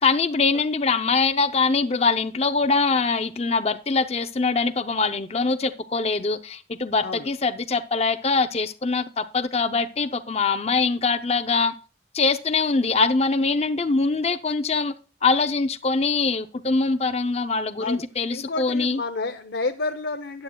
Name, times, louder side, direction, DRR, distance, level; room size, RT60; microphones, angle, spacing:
voice 1, 0.0-11.7 12.1-14.9 15.2-19.0, left 4 dB, 35° left, 0.5 m, -23 dB
voice 2, 18.3-20.4, left 3 dB, 70° left, 0.7 m, -30 dB
13.5 x 9.7 x 2.3 m
head